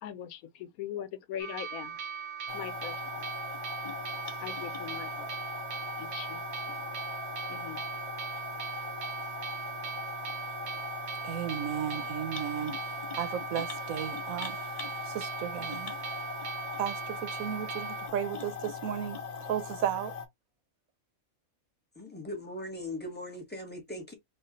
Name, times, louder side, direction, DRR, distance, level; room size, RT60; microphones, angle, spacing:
voice 1, 0.0-2.0 2.5-3.2 4.4-5.3 6.0-6.8 7.5-7.8, left 10 dB, 85° left, 1.1 m, -41 dB
sound 1, 1.4-18.1, right 7 dB, 60° right, 0.8 m, -39 dB
sound 2, 2.5-20.3, left 5 dB, 35° left, 0.6 m, -40 dB
voice 2, 11.2-12.8 13.2-14.5 15.1-15.9 16.8-19.2 19.5-20.1, right 9 dB, 80° right, 1.1 m, -34 dB
voice 3, 21.9-24.1, left 1 dB, 10° left, 1.0 m, -39 dB
3.1 x 2.4 x 3.9 m
omnidirectional pair, 1.4 m